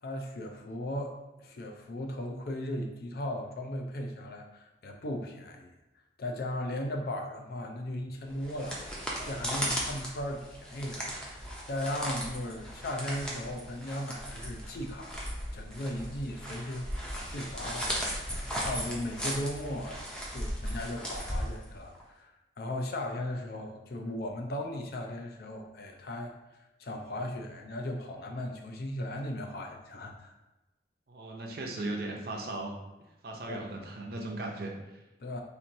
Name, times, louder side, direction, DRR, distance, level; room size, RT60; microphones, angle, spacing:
voice 1, 0.0-5.7 6.2-8.9 9.2-18.3 18.6-20.0 20.3-26.3 26.8-30.3 33.3-33.7 35.2-35.4, left 1 dB, 55° left, 2 dB, 0.5 m, -37 dB
sound 1, 8.3-22.0, equal, 5° left, 0.5 m, -37 dB
voice 2, 31.1-32.8 33.2-35.0, right 2 dB, 55° right, 0 dB, 0.6 m, -37 dB
4.3 x 2.6 x 2.6 m, 1.0 s
head